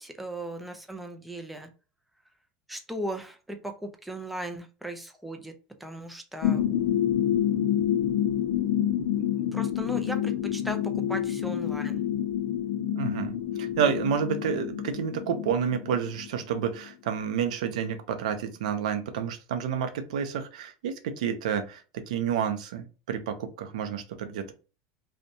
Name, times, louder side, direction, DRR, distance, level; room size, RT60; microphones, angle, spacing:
voice 1, 0.0-1.7 2.7-6.8 9.2-12.0, right 1 dB, ahead, 5 dB, 0.4 m, -37 dB
sound 1, 6.4-16.9, left 10 dB, 75° left, 0.4 m, -28 dB
voice 2, 12.9-24.5, right 7 dB, 85° right, 8 dB, 0.5 m, -30 dB
2.7 x 2.1 x 2.6 m, 0.34 s
supercardioid pair, 125°, 4 cm